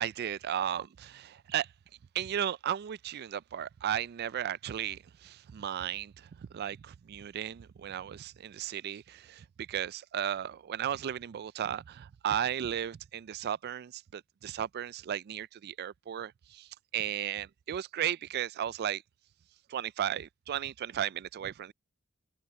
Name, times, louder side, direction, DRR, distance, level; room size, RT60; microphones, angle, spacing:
voice 1, 0.0-1.7 2.1-19.0 19.7-21.7, right 10 dB, 50° right, 0.3 m, -35 dB
open air
head